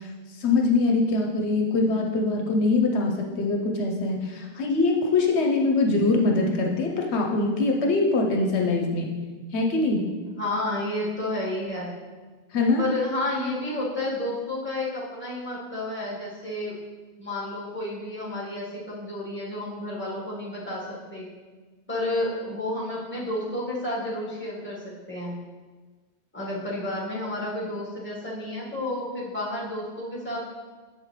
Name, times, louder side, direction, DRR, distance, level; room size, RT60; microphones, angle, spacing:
voice 1, 0.0-9.1 9.5-10.0 12.5-12.9, left 3 dB, 75° left, 1 dB, 1.0 m, -23 dB
voice 2, 10.2-11.9 12.7-16.8 17.2-21.3 21.9-25.4 26.3-30.4, left 1 dB, 10° left, -6 dB, 1.5 m, -31 dB
7.0 x 5.0 x 3.2 m, 1.3 s
omnidirectional pair, 1.1 m